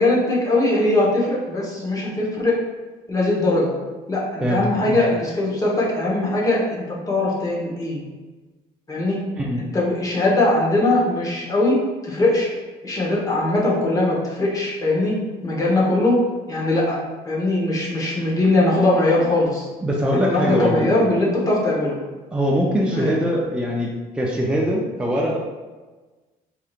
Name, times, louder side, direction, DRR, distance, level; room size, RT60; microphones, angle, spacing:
voice 1, 0.0-2.6 3.1-3.7 4.1-8.0 8.9-9.2 9.6-11.8 12.0-12.5 12.8-15.1 15.4-16.2 16.5-17.0 17.3-19.7 20.2-22.0 22.9-23.1, left 2 dB, 20° left, -4 dB, 1.1 m, -20 dB
voice 2, 4.4-5.0 9.3-9.6 19.8-20.9 22.3-25.4, equal, 5° right, -3 dB, 0.5 m, -22 dB
4.6 x 2.9 x 2.4 m, 1.3 s
cardioid pair, 110°, 17 cm